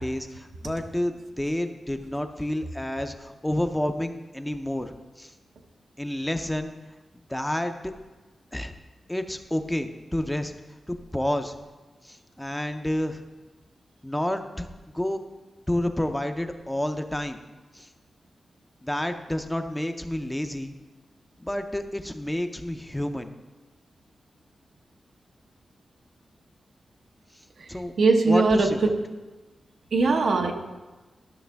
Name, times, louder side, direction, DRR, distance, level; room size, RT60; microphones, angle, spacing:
voice 1, 0.0-5.3 6.0-6.7 7.3-7.7 8.5-8.7 9.1-10.5 10.9-11.6 12.0-13.2 14.0-14.7 14.9-15.2 15.7-17.4 17.7-17.9 18.8-20.7 21.4-23.3 27.7-27.9 28.2-28.9, left 1 dB, 10° left, 7 dB, 0.5 m, -29 dB
voice 2, 28.0-28.7 29.9-30.5, right 3 dB, 80° right, 3 dB, 0.9 m, -20 dB
12.5 x 5.9 x 3.4 m, 1.2 s
wide cardioid pair, 100°, 0 cm